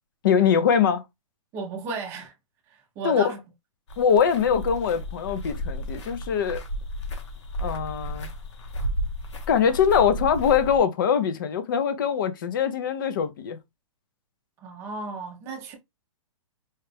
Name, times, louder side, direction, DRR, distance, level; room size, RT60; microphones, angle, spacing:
voice 1, 0.2-1.0 3.0-3.3 4.0-6.6 7.6-8.3 9.5-13.6, left 7 dB, 40° left, 0.6 m, -22 dB
voice 2, 1.5-2.3 3.0-3.4 14.6-15.8, right 4 dB, 15° right, 0.6 m, -34 dB
sound 1, 3.9-10.8, equal, 55° left, 1.0 m, -33 dB
4.3 x 2.4 x 3.2 m
hypercardioid pair, 170°, 18 cm